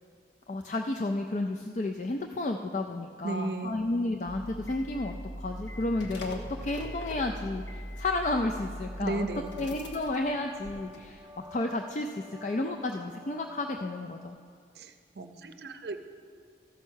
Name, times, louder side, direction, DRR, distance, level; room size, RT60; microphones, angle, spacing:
voice 1, 0.5-9.3 9.6-14.4, left 2 dB, 40° left, 3 dB, 0.4 m, -32 dB
voice 2, 3.2-3.7 9.0-9.5 14.8-16.0, right 2 dB, 65° right, 8 dB, 0.6 m, -34 dB
sound 1, 4.2-11.4 11.6-11.7, equal, 85° left, 1.2 m, -41 dB
sound 2, 8.9-14.3, left 2 dB, 10° right, 0.5 m, -49 dB
14.0 x 5.6 x 6.3 m, 2.1 s
head